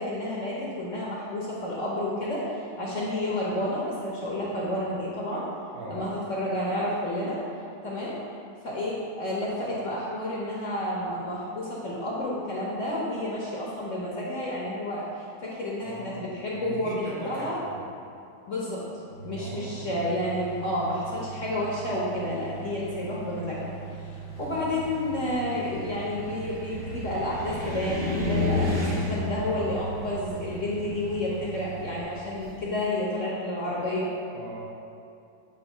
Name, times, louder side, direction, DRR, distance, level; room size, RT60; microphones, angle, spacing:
voice 1, 0.0-5.5 5.9-7.4 7.8-8.2 8.6-17.6 18.5-18.9 19.2-23.7 24.4-34.1, left 1 dB, 50° left, -6 dB, 1.0 m, -30 dB
voice 2, 5.7-6.1 15.8-16.3 16.5-17.8 19.3-20.0 34.3-34.6, right 2 dB, 75° right, -4 dB, 1.8 m, -39 dB
sound 1, 19.1-32.0, right 6 dB, 80° left, 0.5 m, -41 dB
Car, 24.3-32.6, left 2 dB, 55° right, 0.6 m, -32 dB
8.2 x 3.0 x 4.9 m, 2.6 s
omnidirectional pair, 2.1 m